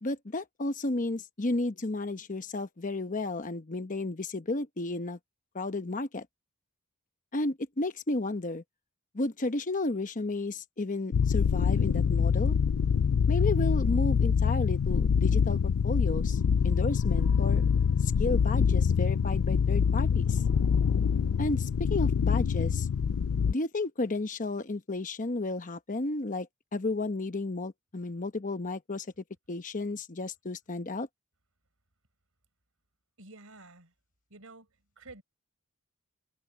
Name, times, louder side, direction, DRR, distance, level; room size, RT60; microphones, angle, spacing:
voice 1, 0.0-5.2 5.5-6.3 7.3-8.6 9.1-12.6 13.3-17.6 18.0-20.4 21.4-22.9 23.5-29.1 29.5-31.1, left 2 dB, 35° left, 1.0 m, -33 dB
sound 1, 11.1-23.5, left 6 dB, 70° left, 0.4 m, -25 dB
voice 2, 33.2-33.9 34.3-34.7 35.0-35.2, right 3 dB, 65° right, 4.7 m, -50 dB
head